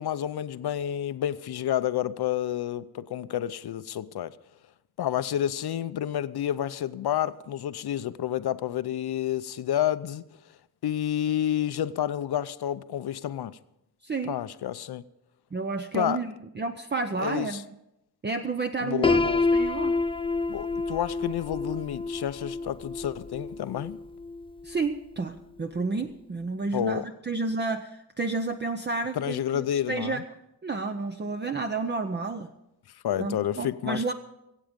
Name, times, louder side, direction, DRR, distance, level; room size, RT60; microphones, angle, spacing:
voice 1, 0.0-4.4 5.0-10.2 10.8-13.6 14.3-15.0 15.9-16.2 17.2-17.6 18.8-19.5 20.5-24.0 26.7-27.1 29.2-30.2 33.0-34.0, left 11 dB, 85° left, 0.7 m, -29 dB
voice 2, 14.0-14.3 15.5-17.6 18.2-19.2 19.5-19.9 24.6-30.2 30.6-32.5 33.2-34.1, right 3 dB, 30° right, 0.6 m, -31 dB
Piano, 19.0-24.9, left 3 dB, 15° left, 0.4 m, -28 dB
24.0 x 8.4 x 5.2 m
wide cardioid pair, 105°, 37 cm